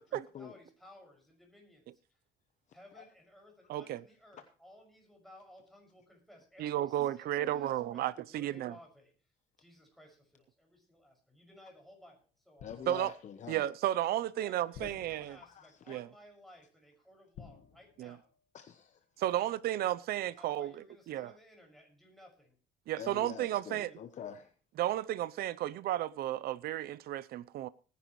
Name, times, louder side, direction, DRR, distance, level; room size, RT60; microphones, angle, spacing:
voice 1, 0.0-2.2 2.7-9.3 9.6-12.7 14.4-18.3 19.3-19.5 20.4-22.6 23.5-24.0, left 1 dB, ahead, 6.0 m, -58 dB
voice 2, 3.7-4.0 6.6-8.8 12.9-13.1 13.5-15.4 15.9-16.1 18.0-18.2 19.2-21.3 22.9-23.9 24.8-27.7, right 13 dB, 65° right, 0.6 m, -33 dB
sound 1, 12.6-13.3 14.7-15.7 17.3-18.4 18.7-19.0, left 7 dB, 75° left, 1.6 m, -54 dB
voice 3, 12.6-13.7 14.8-14.9 15.3-15.9 18.5-19.0 23.0-24.5, left 8 dB, 45° left, 1.0 m, -46 dB
19.0 x 10.5 x 3.1 m
cardioid pair, 110°, 17 cm